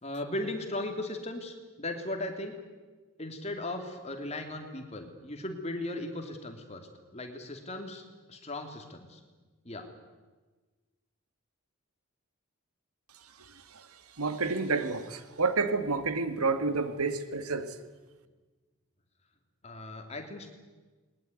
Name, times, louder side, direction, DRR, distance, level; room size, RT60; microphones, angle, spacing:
voice 1, 0.0-2.5 3.2-8.0 8.3-9.2 9.6-9.9 19.6-20.5, left 1 dB, 30° left, 2.9 m, -37 dB
voice 2, 13.4-17.8, right 4 dB, 90° right, 1.8 m, -30 dB
21.0 x 20.0 x 9.7 m
head